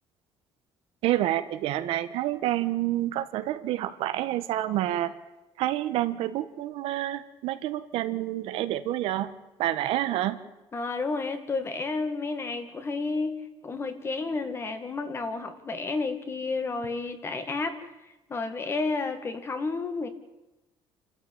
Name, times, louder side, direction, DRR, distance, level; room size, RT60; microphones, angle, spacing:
voice 1, 1.0-5.1 5.6-9.3 9.6-10.4, right 13 dB, 80° right, 10 dB, 1.4 m, -28 dB
voice 2, 10.7-17.9 18.3-20.1, left 3 dB, 25° left, 8 dB, 2.0 m, -31 dB
28.5 x 13.5 x 8.8 m, 1.0 s
cardioid pair, 150°, 10 cm